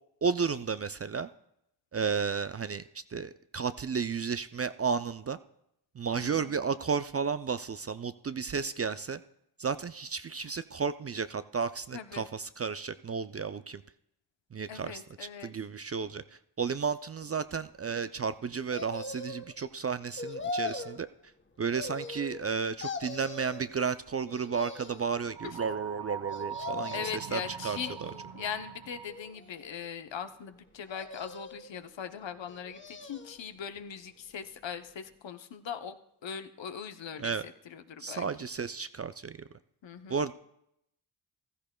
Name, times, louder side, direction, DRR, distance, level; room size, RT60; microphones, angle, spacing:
voice 1, 0.2-1.3 1.9-2.8 3.1-5.4 6.0-9.2 9.6-13.8 14.5-21.1 21.6-28.1 37.2-37.4 38.0-39.4 40.1-40.3, right 5 dB, 35° right, 12 dB, 0.4 m, -33 dB
voice 2, 6.2-6.6 10.4-10.5 11.9-12.3 14.7-15.5 25.4-25.6 26.9-28.0 28.3-38.2 39.8-40.2, left 8 dB, 65° left, 10 dB, 0.8 m, -40 dB
sound 1, 18.7-19.5 20.2-21.0 21.7-22.5 22.8-23.7 24.3-25.1 26.3-27.2 27.8-28.5 29.1-29.9 30.9-31.7 32.4-33.4 33.8-33.9, left 3 dB, 25° left, 1.0 m, -40 dB
sound 2, 25.3-29.3, right 8 dB, 60° right, 0.7 m, -41 dB
15.0 x 13.5 x 2.2 m, 0.78 s
cardioid pair, 45°, 48 cm